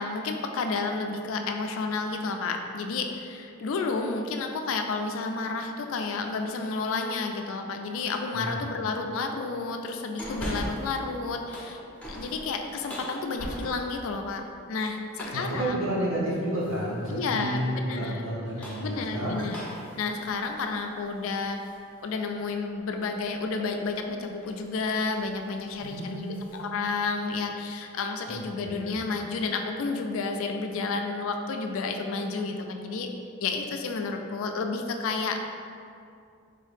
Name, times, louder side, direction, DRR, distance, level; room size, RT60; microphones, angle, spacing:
voice 1, 0.0-11.8 12.1-14.4 14.7-15.7 17.1-18.2 18.8-19.6 20.0-21.6 22.0-33.1 33.4-35.6, left 4 dB, 65° left, 4 dB, 0.3 m, -31 dB
sound 1, 10.2-11.0 11.4-14.1 15.1-15.6 16.6-17.0 18.3-21.8 22.2-22.3 23.9-24.1 24.4-24.7 25.0-25.2 25.6-26.6, equal, 5° left, 0.6 m, -40 dB
voice 2, 15.3-19.4 25.8-26.5 28.3-29.0, right 1 dB, 65° right, -7 dB, 1.2 m, -31 dB
4.0 x 2.7 x 3.4 m, 2.5 s
head